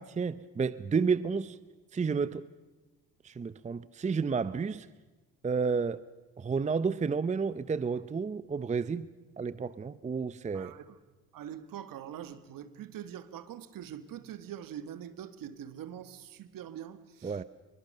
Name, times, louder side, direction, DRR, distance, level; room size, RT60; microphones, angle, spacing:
voice 1, 0.0-1.6 1.9-2.4 3.2-4.9 5.4-6.0 6.4-9.1 9.4-10.7 17.2-17.4, right 5 dB, 20° right, 0.7 m, -31 dB
voice 2, 10.5-11.0 11.3-17.4, right 10 dB, 60° right, 1.9 m, -44 dB
26.0 x 23.0 x 6.7 m
supercardioid pair, 90°, 37 cm